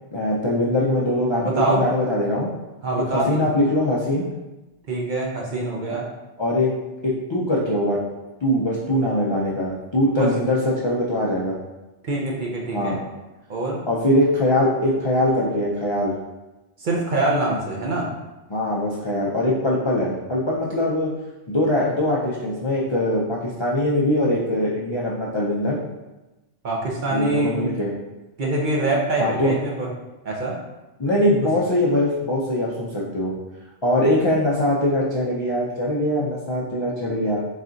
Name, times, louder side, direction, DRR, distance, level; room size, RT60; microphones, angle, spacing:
voice 1, 0.1-2.5 2.9-4.3 6.4-6.7 7.0-8.0 8.4-11.6 12.7-13.0 13.9-16.1 18.5-21.1 21.5-25.8 27.1-27.9 29.2-29.6 31.0-33.3 33.8-37.4, left 1 dB, 45° left, -5 dB, 0.3 m, -22 dB
voice 2, 1.4-1.9 2.8-3.4 4.9-6.1 10.1-10.3 12.0-13.0 13.5-13.8 16.8-18.1 26.6-27.7 28.4-29.9 30.2-30.6, right 2 dB, 50° right, -2 dB, 0.7 m, -24 dB
4.1 x 2.4 x 3.8 m, 1.1 s
omnidirectional pair, 1.2 m